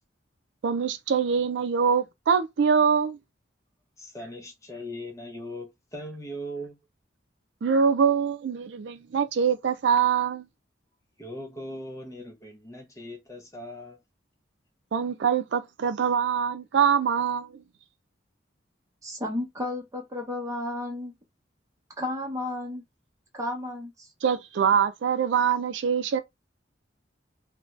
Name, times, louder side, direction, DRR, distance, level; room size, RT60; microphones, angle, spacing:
voice 1, 0.6-3.2 7.6-10.4 14.9-17.6 24.2-26.2, right 7 dB, 65° right, 0.4 m, -24 dB
voice 2, 4.0-6.8 11.2-14.0, equal, 15° left, 0.7 m, -39 dB
voice 3, 19.0-21.1 22.0-22.8 23.3-24.1, left 1 dB, 15° right, 0.8 m, -32 dB
2.6 x 2.2 x 3.1 m
head